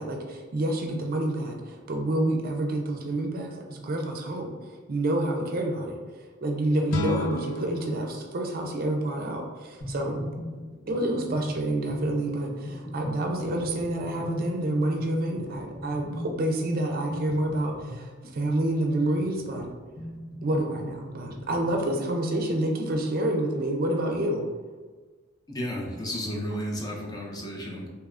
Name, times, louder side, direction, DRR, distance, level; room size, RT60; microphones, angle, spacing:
voice 1, 0.0-4.5 4.9-6.0 6.4-10.2 10.9-19.7 20.4-24.5, right 1 dB, 50° right, 2 dB, 0.5 m, -28 dB
sound 1, 6.9-9.9, left 4 dB, 85° left, 0.3 m, -35 dB
sound 2, 9.8-22.1, left 1 dB, 60° left, 1.3 m, -39 dB
voice 2, 25.5-27.9, equal, 20° left, -1 dB, 0.5 m, -33 dB
3.3 x 2.8 x 2.4 m, 1.4 s
head